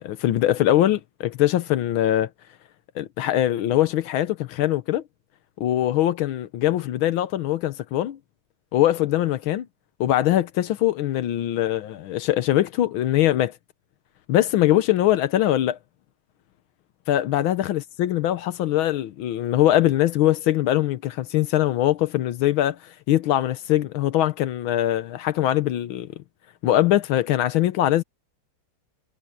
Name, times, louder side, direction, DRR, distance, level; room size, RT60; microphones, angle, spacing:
voice 1, 0.0-2.3 2.9-5.0 5.6-8.2 8.7-9.7 10.0-13.5 14.3-15.8 17.1-26.1 26.6-28.0, left 13 dB, 85° left, 1.6 m, -22 dB
omnidirectional pair, 2.2 m